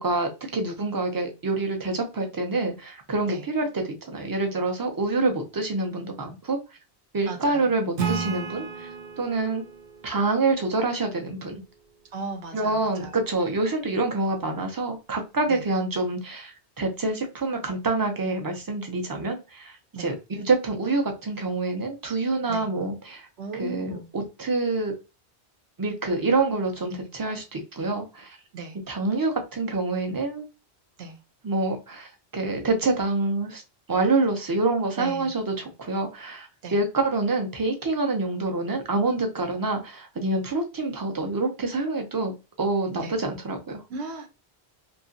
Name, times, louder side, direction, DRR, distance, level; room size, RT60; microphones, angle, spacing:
voice 1, 0.0-6.6 7.1-8.9 9.2-9.6 10.0-11.6 12.5-19.7 20.0-23.3 23.6-24.9 25.8-28.4 28.9-30.4 31.4-33.6 33.9-42.3 42.6-43.8, right 3 dB, 30° right, 3 dB, 0.4 m, -26 dB
voice 2, 7.2-7.7 12.1-13.2 15.5-15.7 19.9-20.1 22.5-22.7 23.4-24.1 26.9-27.0 28.5-28.8 31.0-31.2 35.0-35.3 36.6-36.8 43.0-43.2 43.9-44.3, right 4 dB, 85° right, 6 dB, 1.0 m, -36 dB
Acoustic guitar / Strum, 8.0-11.4, right 5 dB, 60° right, 0.8 m, -33 dB
2.8 x 2.4 x 2.5 m, 0.28 s
omnidirectional pair, 1.1 m